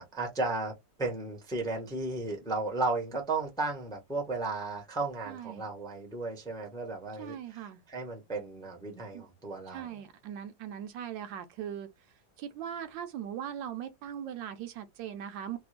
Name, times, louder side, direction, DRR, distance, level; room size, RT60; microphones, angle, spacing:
voice 1, 0.0-7.3 7.9-9.9, right 3 dB, 5° left, 0.6 m, -34 dB
voice 2, 5.3-5.6 7.2-7.8 9.1-9.3 9.7-11.9 12.4-15.6, right 9 dB, 80° right, 1.3 m, -40 dB
3.3 x 2.3 x 3.1 m
omnidirectional pair, 2.0 m